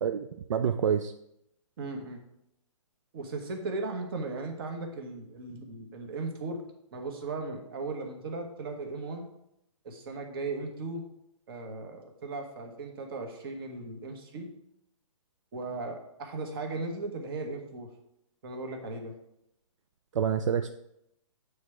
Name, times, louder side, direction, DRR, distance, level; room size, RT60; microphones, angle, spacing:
voice 1, 0.0-1.1 20.1-20.7, right 8 dB, 70° right, 9 dB, 0.4 m, -27 dB
voice 2, 1.8-2.2 3.1-6.6 6.9-9.3 9.8-11.0 11.5-14.5 15.5-17.9 18.4-19.1, right 3 dB, 45° right, 3 dB, 1.3 m, -37 dB
7.9 x 3.4 x 4.9 m, 0.80 s
hypercardioid pair, 155°, 17 cm